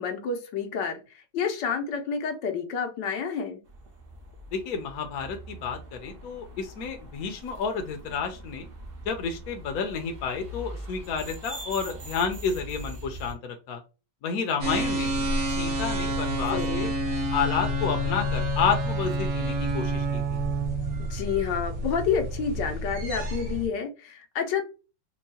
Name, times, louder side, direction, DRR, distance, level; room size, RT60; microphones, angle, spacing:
voice 1, 0.0-3.6 16.4-16.9 21.0-24.6, left 6 dB, 80° left, 4 dB, 1.4 m, -29 dB
sound 1, 3.6-13.3, right 1 dB, 50° right, 0.7 m, -42 dB
voice 2, 4.5-8.7 9.0-13.8 14.2-15.3 15.6-16.9 17.3-20.4, left 6 dB, 65° left, 5 dB, 1.1 m, -30 dB
sound 2, 14.6-23.7, right 1 dB, 80° right, 1.7 m, -28 dB
4.5 x 2.3 x 2.8 m, 0.31 s
omnidirectional pair, 1.9 m